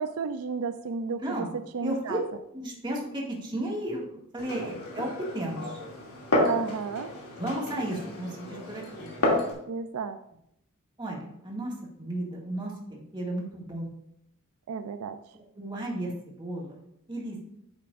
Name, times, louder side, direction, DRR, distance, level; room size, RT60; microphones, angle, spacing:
voice 1, 0.0-1.5 1.7-2.2 4.6-4.7 6.5-7.1 9.7-10.2 14.7-15.2, right 5 dB, 75° right, 9 dB, 0.4 m, -32 dB
voice 2, 1.2-1.5 1.8-2.2 2.5-5.8 7.4-9.1 11.0-13.9 15.3-16.8 17.1-17.4, right 1 dB, 20° right, -3 dB, 2.1 m, -34 dB
Glass, 4.4-9.5, left 1 dB, 85° left, 2.6 m, -31 dB
10.0 x 8.1 x 2.6 m, 0.78 s
head